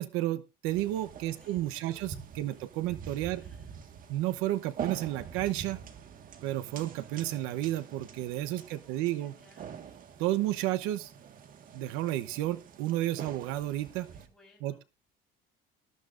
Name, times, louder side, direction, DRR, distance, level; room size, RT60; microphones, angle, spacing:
voice 1, 0.0-3.4 4.1-5.8 6.4-9.3 10.2-11.1 11.7-14.1 14.6-14.8, right 15 dB, 85° right, 11 dB, 1.0 m, -32 dB
sound 1, 0.7-14.3, right 7 dB, 40° right, 1.7 m, -46 dB
voice 2, 1.4-2.1 2.4-2.6 3.4-3.8 8.6-10.0 14.1-14.9, left 2 dB, ahead, -2 dB, 5.9 m, -63 dB
20.0 x 12.0 x 2.6 m, 0.27 s
cardioid pair, 150°, 21 cm